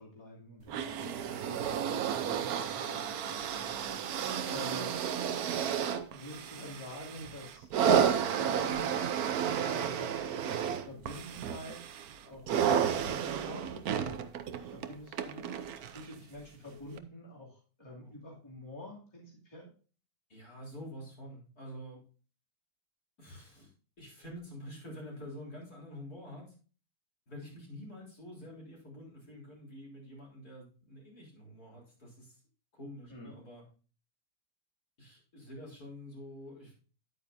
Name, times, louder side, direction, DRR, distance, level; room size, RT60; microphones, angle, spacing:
voice 1, 0.0-1.1 1.9-5.0 6.1-7.7 8.0-9.3 9.6-10.1 10.8-11.8 12.2-14.2 14.7-15.6 15.9-19.7 33.1-33.3, left 1 dB, 15° left, -4 dB, 2.5 m, -48 dB
sound 1, 0.7-16.1 17.0-17.1, right 8 dB, 65° right, 1.0 m, -32 dB
voice 2, 1.1-1.6 18.0-18.1 20.3-22.0 23.2-23.7 24.0-26.6 27.3-32.4 32.7-33.6 35.0-36.7, equal, 50° left, -3 dB, 4.2 m, -47 dB
10.0 x 9.1 x 2.6 m, 0.37 s
omnidirectional pair, 2.1 m